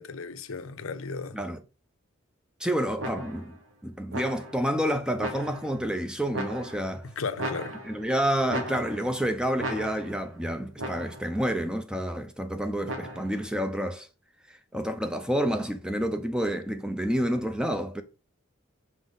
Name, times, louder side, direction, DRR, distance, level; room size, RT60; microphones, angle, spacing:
voice 1, 0.0-1.4 7.0-7.8, left 4 dB, 90° left, 0.7 m, -35 dB
voice 2, 2.6-3.5 3.8-7.1 7.8-14.1 14.7-18.0, equal, 5° right, 0.5 m, -29 dB
sound 1, 3.0-3.6 4.1-4.7 5.2-5.8 6.3-7.0 7.4-8.1 8.5-9.2 9.6-10.3 10.8-11.4 12.9-13.5, right 1 dB, 70° right, 1.3 m, -36 dB
6.1 x 3.9 x 3.9 m
head